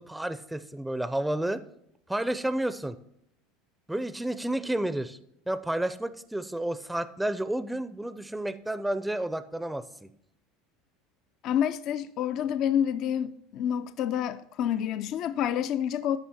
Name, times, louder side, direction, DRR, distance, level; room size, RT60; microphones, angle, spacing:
voice 1, 0.0-1.6 2.1-3.0 3.9-5.2 5.5-10.1, right 1 dB, 5° right, 0.5 m, -31 dB
voice 2, 11.4-16.2, left 9 dB, 55° left, 0.5 m, -28 dB
12.5 x 5.6 x 4.3 m
supercardioid pair, 105°, 0 cm